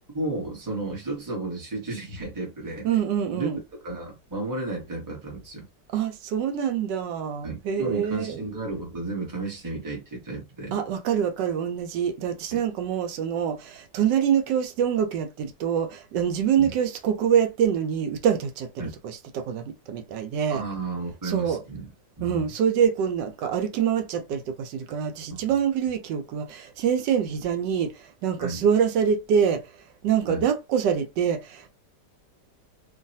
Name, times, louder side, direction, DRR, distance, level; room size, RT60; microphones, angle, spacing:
voice 1, 0.1-2.9 3.3-3.5 3.8-5.7 7.4-10.7 12.5-12.6 16.6-16.7 18.8-18.9 20.5-21.9 22.2-22.5 25.3-25.4 28.4-28.6 30.3-30.4, right 2 dB, 15° right, 0.9 m, -33 dB
voice 2, 2.8-3.6 5.9-8.5 10.7-20.6 21.2-21.6 22.2-29.7 30.0-31.7, right 8 dB, 85° right, 1.2 m, -25 dB
3.1 x 2.2 x 2.6 m
omnidirectional pair, 1.9 m